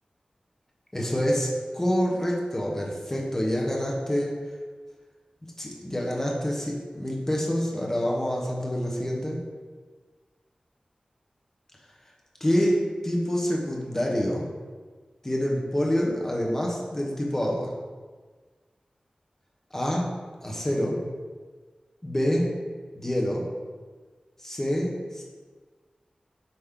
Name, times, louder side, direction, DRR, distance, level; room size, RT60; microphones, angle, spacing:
voice 1, 0.9-1.5 1.7-4.3 5.6-9.4 12.4-14.5 15.2-17.7 19.7-20.1 20.4-21.0 22.0-22.5 22.9-23.4 24.4-25.2, equal, 20° left, -2 dB, 1.2 m, -26 dB
8.0 x 3.2 x 3.8 m, 1.4 s
wide cardioid pair, 85°, 2 cm